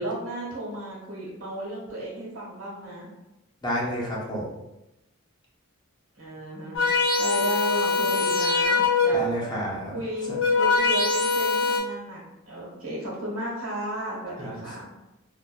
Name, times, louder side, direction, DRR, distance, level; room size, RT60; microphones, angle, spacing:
voice 1, 0.0-3.1 6.2-9.2 9.9-14.8, right 1 dB, 80° right, -5 dB, 1.0 m, -34 dB
voice 2, 3.6-4.5 9.1-9.9 10.3-10.4 14.4-14.6, equal, 20° left, -4 dB, 0.5 m, -30 dB
sound 1, 6.8-9.4 10.1-11.8, left 4 dB, 70° left, 0.6 m, -23 dB
2.5 x 2.1 x 2.3 m, 0.94 s
head